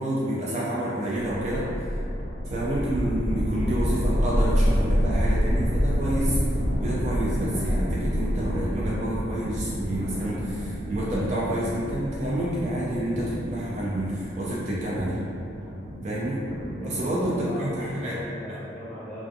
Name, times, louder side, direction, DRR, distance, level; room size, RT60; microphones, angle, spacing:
voice 1, 0.0-1.7 2.5-6.4 6.8-15.2 16.0-16.5 16.8-18.2, right 1 dB, 40° right, -6 dB, 0.3 m, -29 dB
sound 1, 1.2-14.2, equal, 50° left, 0.3 m, -27 dB
sound 2, 4.2-18.3, equal, 75° right, 0.7 m, -38 dB
voice 2, 16.8-19.2, left 1 dB, 5° left, -11 dB, 0.7 m, -37 dB
2.4 x 2.3 x 2.6 m, 2.5 s
head